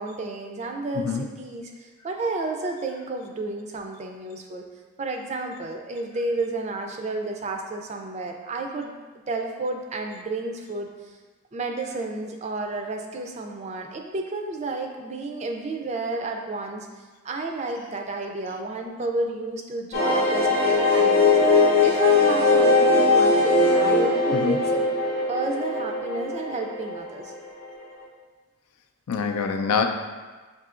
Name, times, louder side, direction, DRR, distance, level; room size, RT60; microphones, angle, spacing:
voice 1, 0.0-4.7 5.0-8.9 9.3-10.9 11.5-16.9 17.2-21.3 21.8-24.8 25.3-27.3, right 2 dB, 30° right, 3 dB, 0.3 m, -31 dB
voice 2, 0.9-1.3 24.3-24.7 29.1-29.8, left 5 dB, 90° left, 5 dB, 0.4 m, -25 dB
sound 1, 19.9-27.4 27.7-27.8 28.0-28.1, left 3 dB, 45° left, 0.7 m, -20 dB
6.7 x 2.7 x 2.4 m, 1.3 s
head